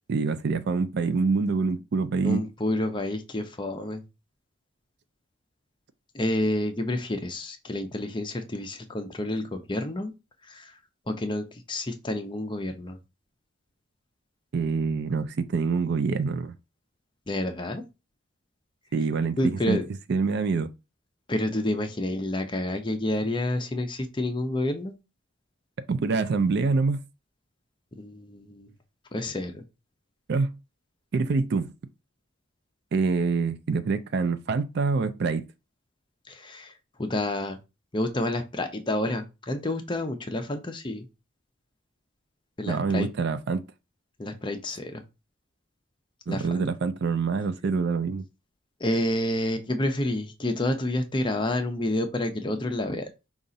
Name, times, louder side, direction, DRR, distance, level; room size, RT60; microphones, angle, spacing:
voice 1, 0.1-2.4 14.5-16.5 18.9-19.8 20.1-20.7 25.9-27.0 30.3-30.5 31.1-31.7 32.9-35.5 42.7-43.6 46.3-48.2, right 4 dB, 55° right, 0.4 m, -25 dB
voice 2, 2.2-4.0 6.1-10.1 10.5-10.7 11.1-13.0 17.3-17.8 19.4-19.8 21.3-24.9 27.9-28.7 29.1-29.6 36.3-36.7 37.0-37.6 37.9-41.1 42.6-43.1 44.2-45.0 46.3-46.7 48.8-53.1, left 1 dB, 25° left, 0.6 m, -29 dB
5.4 x 2.4 x 3.8 m
head